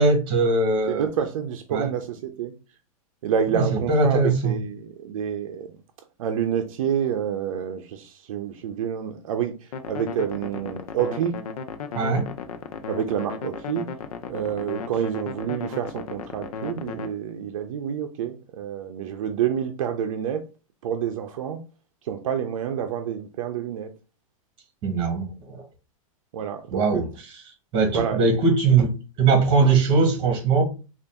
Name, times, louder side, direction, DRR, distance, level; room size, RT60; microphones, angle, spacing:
voice 1, 0.0-1.1 1.7-1.9 3.5-4.6 11.9-12.3 24.8-25.6 26.7-27.0 27.7-30.6, right 4 dB, 25° right, 1.4 m, -21 dB
voice 2, 0.9-2.5 3.2-5.8 6.2-11.4 12.9-13.9 14.3-20.5 20.8-21.6 22.0-23.9 26.3-27.1 27.9-28.3 29.6-29.7, right 8 dB, 65° right, 0.6 m, -28 dB
sound 1, 9.7-17.1, left 6 dB, 90° left, 0.6 m, -35 dB
3.8 x 2.5 x 3.5 m
supercardioid pair, 155°, 18 cm